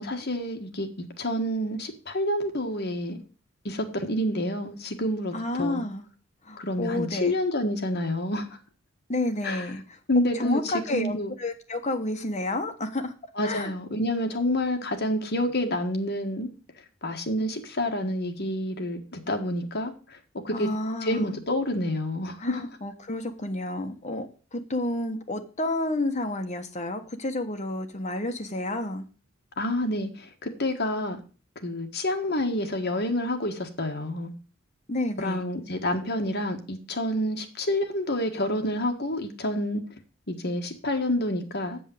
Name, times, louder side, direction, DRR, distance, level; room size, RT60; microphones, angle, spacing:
voice 1, 0.0-3.2 3.6-5.8 6.6-8.5 9.4-9.6 10.1-11.3 13.4-16.5 17.0-19.9 20.4-20.7 21.0-22.7 29.6-31.2 31.6-34.3 35.2-39.8 40.3-41.9, left 1 dB, 50° left, 4 dB, 1.6 m, -28 dB
voice 2, 5.3-6.0 6.4-7.3 9.1-10.0 10.3-13.1 13.4-13.7 20.5-21.4 22.4-29.0 34.9-35.4, left 1 dB, 35° left, 5 dB, 1.3 m, -30 dB
8.3 x 5.4 x 7.9 m, 0.37 s
head